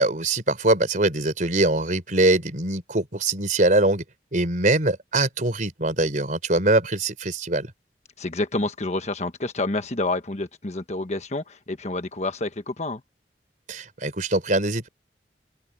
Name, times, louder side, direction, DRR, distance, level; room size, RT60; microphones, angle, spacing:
voice 1, 0.0-4.0 4.3-7.7 13.7-14.9, right 2 dB, 45° right, 4.0 m, -22 dB
voice 2, 8.2-13.0, left 2 dB, 40° left, 1.3 m, -28 dB
head